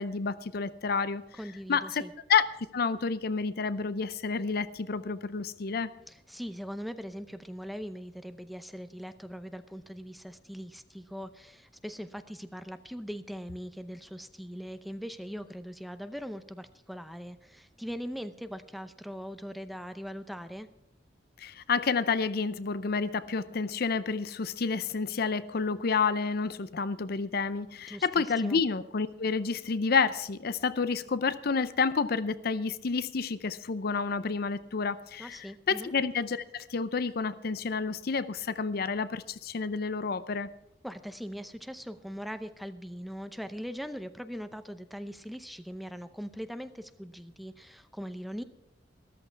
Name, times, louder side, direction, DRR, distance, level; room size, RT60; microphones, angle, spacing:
voice 1, 0.0-1.2 1.7-2.0 2.3-2.5 2.7-5.9 21.4-40.5, left 5 dB, 60° left, 15 dB, 0.6 m, -29 dB
voice 2, 1.3-2.1 6.1-20.7 27.9-28.1 28.4-28.6 35.2-35.9 40.8-48.4, equal, ahead, 10 dB, 0.6 m, -41 dB
13.5 x 13.5 x 4.6 m, 0.83 s
head